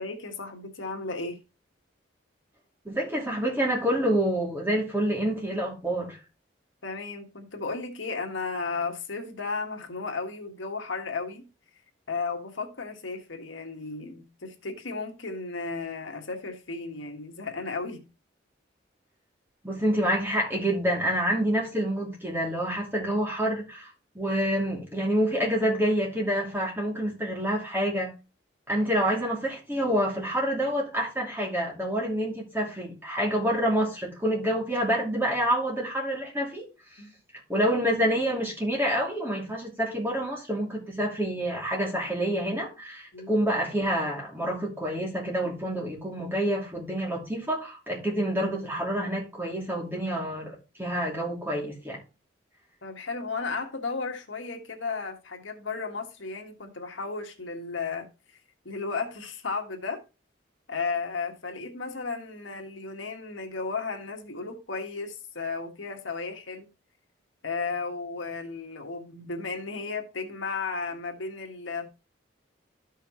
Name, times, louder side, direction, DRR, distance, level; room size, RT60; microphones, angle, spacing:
voice 1, 0.0-1.4 6.8-11.5 12.1-18.0 37.0-37.1 43.1-43.3 52.8-58.4 58.6-60.0 60.7-66.7 67.4-71.9, left 4 dB, 85° left, 1.6 m, -34 dB
voice 2, 2.8-6.2 19.6-23.9 24.1-28.1 28.7-37.0 37.5-52.0, equal, 10° right, 2.7 m, -27 dB
13.0 x 5.6 x 3.1 m
head